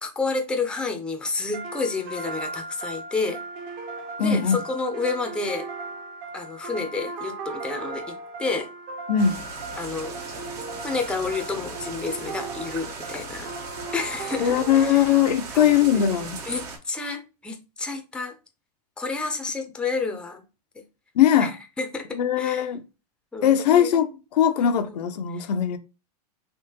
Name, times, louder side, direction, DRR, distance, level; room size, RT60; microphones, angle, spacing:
voice 1, 0.0-3.4 4.2-5.7 6.3-8.7 9.8-10.1 10.8-13.5 13.9-15.1 15.5-16.1 16.5-18.4 19.0-20.4 21.4-21.5 21.8-22.7 23.3-23.9 24.6-25.0 25.3-25.4, left 4 dB, 5° left, 0.5 m, -30 dB
sound 1, 1.5-15.4, right 3 dB, 40° right, 0.8 m, -37 dB
voice 2, 4.2-4.6 9.1-9.4 14.4-16.4 21.2-21.5 22.1-22.8 23.4-25.8, left 9 dB, 80° left, 0.6 m, -20 dB
sound 2, 9.2-16.8, right 4 dB, 75° right, 1.4 m, -38 dB
3.5 x 2.9 x 2.8 m
hypercardioid pair, 130°, 21 cm